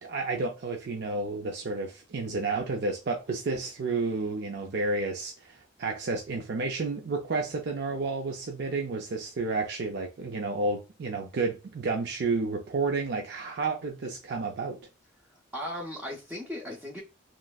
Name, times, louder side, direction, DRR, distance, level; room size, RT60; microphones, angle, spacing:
voice 1, 0.0-14.8, right 3 dB, 55° right, 0.4 m, -31 dB
voice 2, 15.2-17.0, left 1 dB, 5° right, 0.5 m, -37 dB
3.0 x 2.5 x 2.3 m
head